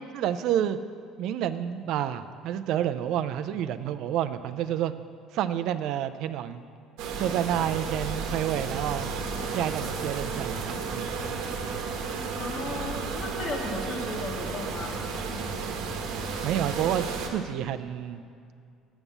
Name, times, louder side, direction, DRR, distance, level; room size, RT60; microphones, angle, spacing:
voice 1, 0.1-0.8 1.2-4.9 5.3-6.7 7.2-9.1 9.5-11.1 15.8-15.9 16.4-18.2, right 10 dB, 65° right, 12 dB, 0.3 m, -29 dB
sound 1, 7.0-17.3, right 4 dB, 80° right, 1.0 m, -33 dB
voice 2, 12.4-15.1, left 2 dB, 50° left, 1 dB, 1.4 m, -35 dB
8.0 x 5.4 x 7.1 m, 2.3 s
cardioid pair, 135°, 0 cm